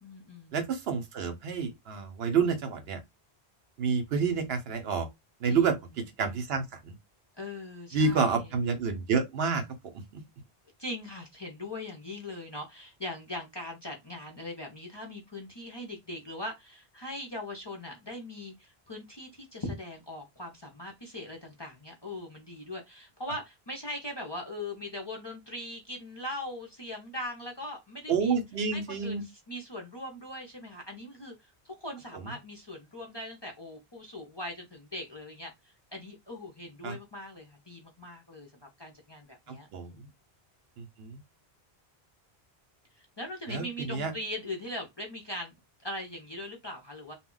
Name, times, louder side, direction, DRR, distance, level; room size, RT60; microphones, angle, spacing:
voice 1, 0.0-0.5 5.4-5.7 7.4-8.4 10.8-28.4 28.7-31.3 31.6-38.5 38.8-40.1 43.2-45.5 45.8-47.1, left 1 dB, 30° left, 0.5 m, -40 dB
voice 2, 0.5-3.0 3.8-5.1 5.4-6.9 7.9-10.0 28.1-29.2 32.1-32.3 36.8-37.0 39.5-40.0 40.8-41.2 43.5-44.1, right 5 dB, 75° right, 0.9 m, -29 dB
2.2 x 2.1 x 3.7 m
omnidirectional pair, 1.1 m